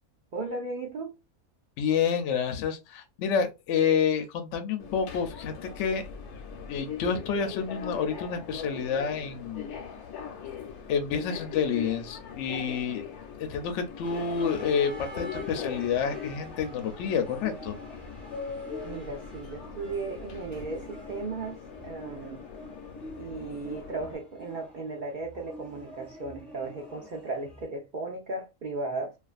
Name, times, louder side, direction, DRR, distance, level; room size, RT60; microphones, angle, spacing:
voice 1, 0.3-1.1 18.8-22.4 23.2-29.2, right 3 dB, 65° right, 0.4 m, -36 dB
voice 2, 1.8-6.0 6.7-9.6 10.9-13.0 13.4-17.8, left 6 dB, 65° left, 0.8 m, -28 dB
Subway metro underground, 4.8-24.2, left 7 dB, 90° left, 1.1 m, -41 dB
sound 1, 14.0-27.7, equal, ahead, 0.5 m, -46 dB
2.5 x 2.4 x 2.3 m
omnidirectional pair, 1.5 m